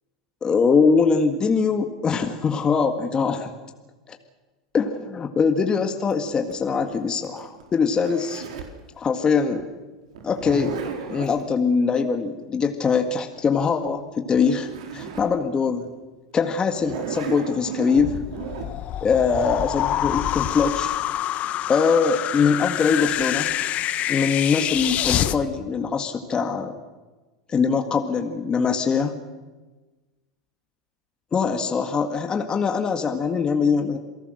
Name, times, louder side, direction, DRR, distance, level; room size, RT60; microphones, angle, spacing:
voice 1, 0.4-3.5 4.1-4.2 4.7-8.4 9.0-9.7 10.2-10.8 11.1-15.9 16.3-18.2 19.0-21.0 21.7-23.5 24.1-26.7 27.5-29.2 31.3-34.0, left 5 dB, 25° left, 5 dB, 1.9 m, -22 dB
Zipper (clothing), 6.1-8.8 10.1-11.4 14.0-14.1 14.3-15.3 15.8-15.9 16.7-18.7, right 6 dB, 80° right, 4.4 m, -34 dB
sound 1, 17.9-25.4, left 12 dB, 45° left, 1.2 m, -26 dB
28.0 x 18.5 x 6.5 m, 1.2 s
hypercardioid pair, 110°, 3 cm